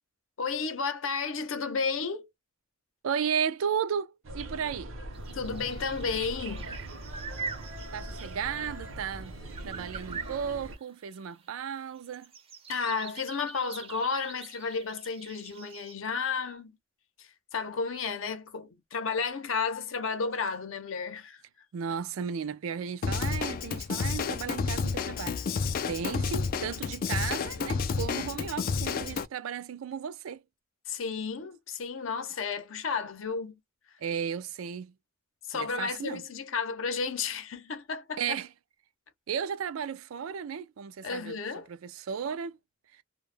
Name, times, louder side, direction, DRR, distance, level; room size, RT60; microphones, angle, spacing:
voice 1, 0.4-2.3 5.3-6.7 12.7-16.7 17.2-21.4 30.9-33.6 35.5-38.4 41.0-41.7, left 5 dB, 75° left, 0.7 m, -32 dB
voice 2, 3.0-4.9 7.9-9.3 9.6-12.3 21.7-25.4 25.9-30.4 34.0-34.9 35.5-36.2 38.2-38.5 39.3-41.4 41.7-42.6 42.9-43.0, right 7 dB, 90° right, 0.4 m, -34 dB
sound 1, 4.2-10.8, right 1 dB, 75° right, 0.7 m, -41 dB
sound 2, 5.1-9.3 9.5-15.9, right 4 dB, 30° right, 0.5 m, -44 dB
Drum kit / Drum, 23.0-29.3, left 5 dB, 45° left, 0.3 m, -30 dB
2.2 x 2.1 x 3.2 m
head